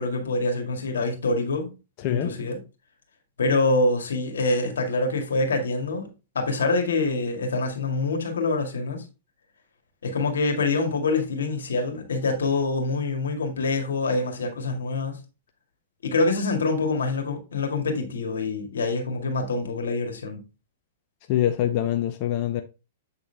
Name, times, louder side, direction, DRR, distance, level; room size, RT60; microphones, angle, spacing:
voice 1, 0.0-1.7 2.1-2.6 3.4-6.1 6.3-9.0 10.0-15.2 16.0-20.4, left 3 dB, 90° left, 2.0 m, -25 dB
voice 2, 21.3-22.6, left 12 dB, 45° left, 0.6 m, -24 dB
8.0 x 3.8 x 3.3 m
hypercardioid pair, 130°, 0 cm